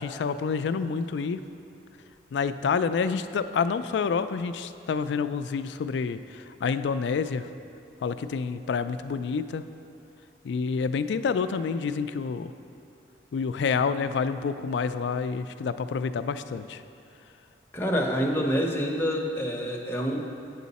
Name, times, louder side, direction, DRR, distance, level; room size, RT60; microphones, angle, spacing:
voice 1, 0.0-1.4 2.3-7.5 8.0-9.6 10.4-12.5 13.3-16.8, left 5 dB, 75° left, 12 dB, 0.3 m, -28 dB
voice 2, 17.7-20.2, equal, 15° left, -1 dB, 0.7 m, -27 dB
8.4 x 7.1 x 4.1 m, 2.6 s
head